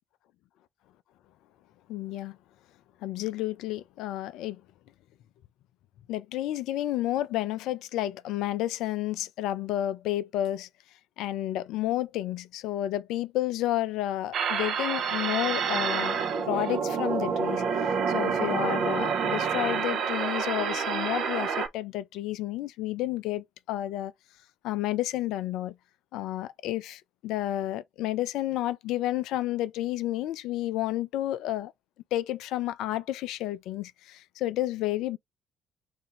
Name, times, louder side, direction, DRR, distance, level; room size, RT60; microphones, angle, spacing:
voice 1, 1.9-2.4 3.0-4.6 6.1-10.7 11.2-16.2 16.5-17.6 18.1-24.1 24.6-25.7 26.1-31.7 32.1-35.2, left 14 dB, 65° left, 0.3 m, -31 dB
sound 1, 14.3-21.7, right 6 dB, 60° right, 0.6 m, -28 dB
2.8 x 2.6 x 3.8 m
figure-of-eight pair, 45°, 0 cm